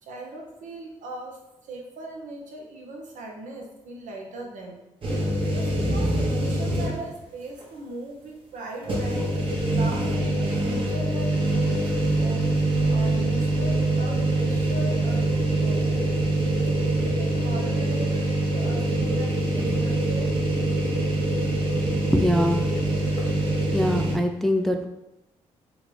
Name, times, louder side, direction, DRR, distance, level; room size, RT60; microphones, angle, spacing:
voice 1, 0.0-4.8 5.5-16.1 16.6-20.3 22.5-23.0, right 1 dB, 65° right, 0 dB, 0.8 m, -39 dB
sound 1, 5.0-7.2 7.6-7.7 8.8-24.1, right 1 dB, 40° right, 1.1 m, -24 dB
voice 2, 22.0-22.6 23.7-24.9, equal, ahead, 4 dB, 0.3 m, -23 dB
3.6 x 2.3 x 3.2 m, 0.92 s
cardioid pair, 70°, 14 cm